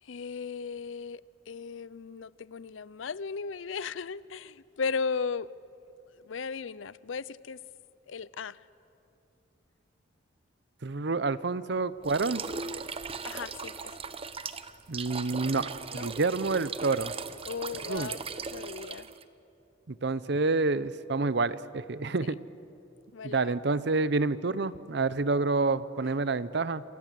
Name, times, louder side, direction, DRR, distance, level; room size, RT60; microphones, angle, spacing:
voice 1, 0.0-5.5 6.1-7.6 8.1-8.6 13.2-14.0 15.9-16.2 17.5-19.1 23.1-23.5, left 5 dB, 80° left, 19 dB, 0.6 m, -36 dB
voice 2, 10.8-12.4 14.9-17.1 17.9-18.1 19.9-22.4 23.2-26.8, right 3 dB, 60° right, 16 dB, 0.7 m, -28 dB
sound 1, 12.0-19.2, right 5 dB, 30° right, 0.8 m, -38 dB
28.0 x 26.5 x 7.6 m, 2.8 s
head